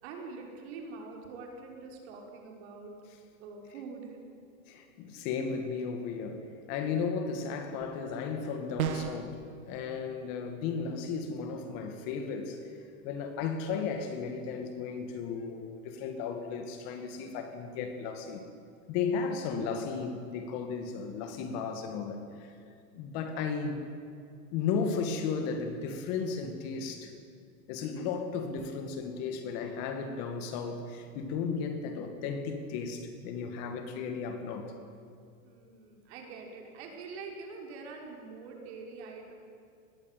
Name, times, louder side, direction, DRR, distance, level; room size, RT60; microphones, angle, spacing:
voice 1, 0.0-2.9 3.4-4.2 35.4-39.3, right 4 dB, 50° right, 1 dB, 5.9 m, -44 dB
voice 2, 4.7-9.4 9.7-12.7 13.0-18.4 18.9-22.5 22.9-23.9 24.5-27.1 27.7-34.7, left 5 dB, 35° left, 7 dB, 2.3 m, -35 dB
sound 1, 8.8-9.3, right 9 dB, 80° right, 2.4 m, -31 dB
25.0 x 20.5 x 9.3 m, 2.5 s
supercardioid pair, 160°, 42 cm